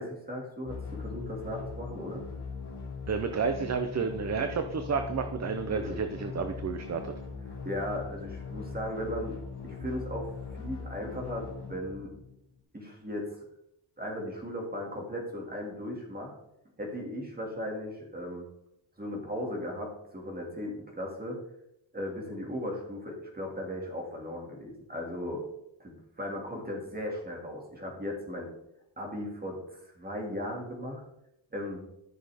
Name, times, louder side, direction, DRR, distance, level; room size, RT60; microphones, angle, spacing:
voice 1, 0.0-2.2 5.7-6.0 7.6-9.4 9.6-12.1 12.7-13.3 14.0-16.3 16.8-18.5 19.0-21.4 21.9-25.4 25.8-28.5 29.0-31.0 31.5-31.8, left 1 dB, 20° right, -1 dB, 2.1 m, -37 dB
sound 1, 0.6-12.6, left 5 dB, 60° left, 3.0 m, -40 dB
voice 2, 3.1-7.1, right 5 dB, 35° right, 7 dB, 0.6 m, -31 dB
13.0 x 6.3 x 3.5 m, 0.82 s
wide cardioid pair, 180°, 46 cm